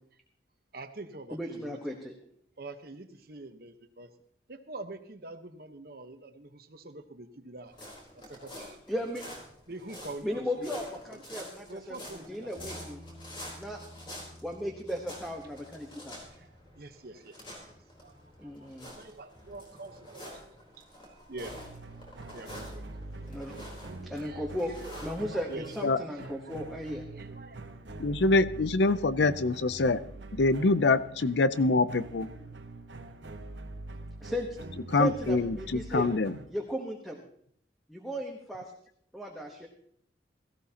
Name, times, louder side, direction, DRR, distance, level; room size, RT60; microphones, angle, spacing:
voice 1, 0.7-1.8 2.6-4.2 4.5-7.7 8.1-8.8 9.7-11.2 11.7-12.8 16.0-16.1 16.3-17.6 18.0-18.5 18.9-23.1 23.4-23.5 24.1-24.5 24.9-25.0 25.3-26.6 26.9-27.7, right 2 dB, 55° right, 8 dB, 1.1 m, -46 dB
voice 2, 1.3-2.1 8.9-9.2 10.2-13.0 13.6-13.8 14.4-16.2 18.4-19.0 23.3-23.5 24.0-25.5 25.8-27.0 34.2-34.5 34.9-36.2 36.5-37.2 37.9-38.7 39.1-39.7, equal, ahead, -1 dB, 1.1 m, -36 dB
sound 1, 7.7-25.8, left 1 dB, 25° left, 4.0 m, -48 dB
Bass guitar, 12.6-18.8, equal, 50° left, 4.5 m, -53 dB
sound 2, 21.4-36.5, right 2 dB, 85° right, 1.1 m, -44 dB
voice 3, 28.0-30.0 30.3-32.3 34.9-36.3, left 3 dB, 75° left, 15 dB, 0.6 m, -25 dB
17.0 x 14.5 x 2.9 m, 0.66 s
head